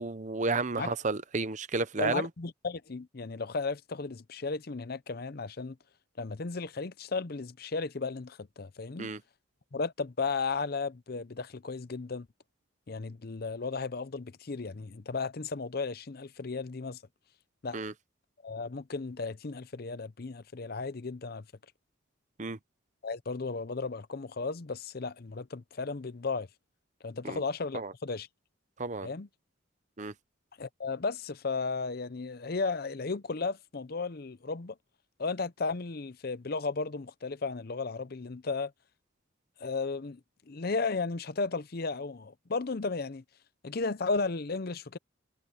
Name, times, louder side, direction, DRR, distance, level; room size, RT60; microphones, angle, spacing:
voice 1, 0.0-2.3 9.0-9.2 17.7-17.9 22.4-22.6 27.2-27.4 27.7-27.9 28.8-29.1 30.0-30.1, right 3 dB, 35° right, 0.7 m, -32 dB
voice 2, 2.0-5.8 6.2-9.1 9.7-12.3 12.9-17.0 17.6-17.8 18.4-21.4 23.0-26.5 27.0-28.3 29.0-29.3 30.6-34.7 35.2-38.7 39.6-40.2 40.5-43.2 43.6-45.0, left 4 dB, 50° left, 0.6 m, -34 dB
head